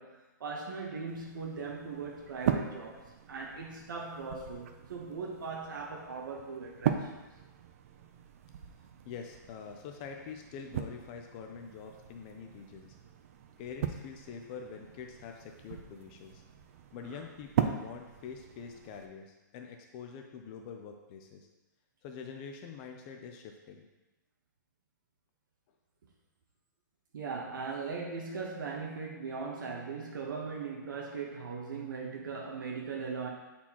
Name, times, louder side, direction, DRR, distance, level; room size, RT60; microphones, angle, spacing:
voice 1, 0.0-7.1 17.1-17.2 27.1-33.3, right 4 dB, 75° right, -1 dB, 1.0 m, -39 dB
sound 1, 1.1-19.1, right 9 dB, 45° right, 0.5 m, -39 dB
voice 2, 9.1-13.0 13.6-16.4 16.9-21.5 22.0-23.9 32.0-32.2, left 6 dB, 25° left, 3 dB, 0.4 m, -45 dB
9.0 x 4.3 x 2.9 m, 1.1 s
hypercardioid pair, 165°, 11 cm